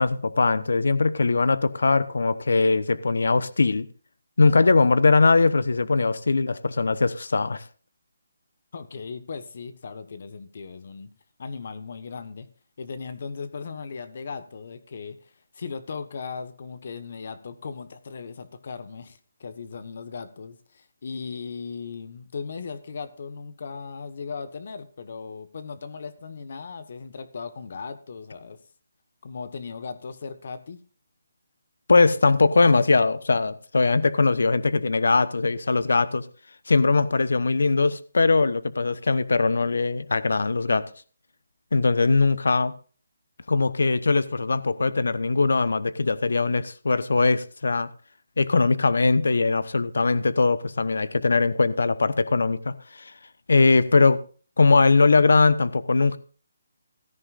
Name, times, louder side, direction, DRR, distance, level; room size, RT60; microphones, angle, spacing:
voice 1, 0.0-3.9 4.4-7.6 31.9-36.3 36.7-40.9 41.7-42.7 43.5-47.9 48.4-53.1 53.5-54.2 54.6-56.2, left 3 dB, 80° left, 0.9 m, -21 dB
voice 2, 8.7-11.1 11.4-12.5 12.8-28.6 29.2-30.8, left 5 dB, 50° left, 1.3 m, -37 dB
16.5 x 13.5 x 2.5 m
hypercardioid pair, 170°, 0 cm